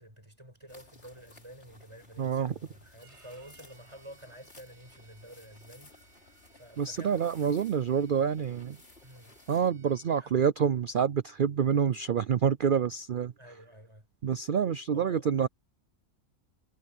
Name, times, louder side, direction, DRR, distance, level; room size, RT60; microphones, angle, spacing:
voice 1, 0.0-5.9 6.5-7.7 9.0-9.4 10.1-10.3 13.4-14.0 14.9-15.3, right 1 dB, 20° right, 7.6 m, -50 dB
sound 1, 0.7-9.7, left 2 dB, 40° left, 3.4 m, -58 dB
voice 2, 2.2-2.5 6.8-8.8 9.5-13.3 14.2-15.5, right 7 dB, 85° right, 0.4 m, -27 dB
Bowed string instrument, 3.0-10.2, right 5 dB, 45° right, 8.0 m, -63 dB
omnidirectional pair, 1.6 m